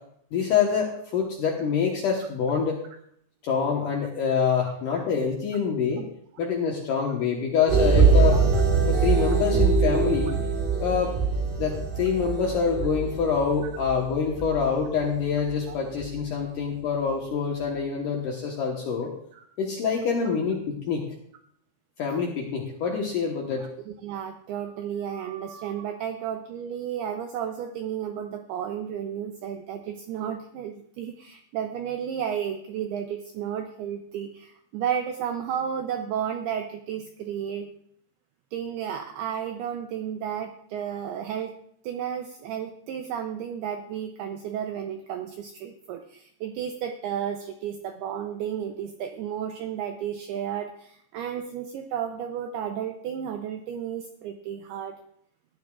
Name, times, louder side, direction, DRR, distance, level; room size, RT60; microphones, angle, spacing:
voice 1, 0.3-2.8 3.4-6.1 6.4-8.4 8.8-10.4 10.8-11.2 11.6-19.1 19.6-21.1 22.0-23.7, left 6 dB, 65° left, 0 dB, 2.1 m, -26 dB
sound 1, 7.7-15.6 16.0-16.1, right 4 dB, 60° right, 4.5 m, -23 dB
voice 2, 23.6-37.7 38.5-41.6 41.8-55.0, right 9 dB, 85° right, 5 dB, 2.3 m, -33 dB
18.5 x 11.5 x 2.4 m, 0.69 s
omnidirectional pair, 5.4 m